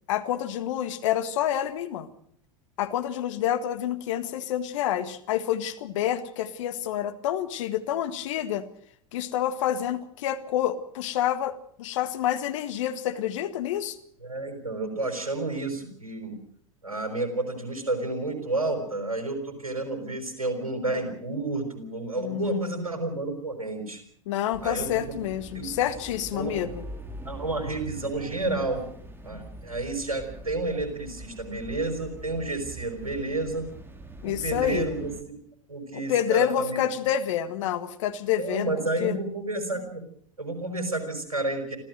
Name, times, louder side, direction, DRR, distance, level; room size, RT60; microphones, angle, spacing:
voice 1, 0.1-2.1 2.8-8.7 9.1-11.5 11.8-14.0 22.2-22.8 24.2-26.8 34.2-34.9 35.9-38.7 39.0-39.2, left 11 dB, 60° left, 11 dB, 1.7 m, -28 dB
voice 2, 14.2-16.3 16.8-24.0 24.6-25.3 25.5-25.7 26.3-26.6 27.2-28.8 29.2-33.6 34.2-35.3 35.7-36.9 38.4-40.0 40.4-41.8, right 2 dB, 80° right, 6 dB, 5.2 m, -30 dB
sound 1, 24.5-35.2, right 2 dB, 10° right, 2.8 m, -43 dB
26.0 x 15.5 x 6.5 m, 0.64 s
figure-of-eight pair, 80°, 18 cm